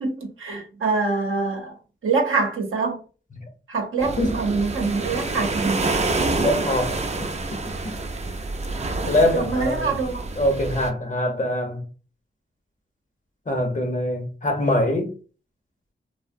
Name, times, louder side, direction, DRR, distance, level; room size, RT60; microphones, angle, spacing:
voice 1, 0.0-1.7 2.0-3.0 3.7-5.9 9.3-10.3, right 4 dB, 85° right, 0.7 m, -25 dB
sound 1, 4.0-10.9, right 3 dB, 35° right, 0.4 m, -27 dB
voice 2, 6.4-7.0 7.8-7.9 9.1-10.0 10.4-11.8 13.5-15.1, left 1 dB, 40° left, 0.7 m, -23 dB
2.7 x 2.0 x 2.5 m
cardioid pair, 65°, 21 cm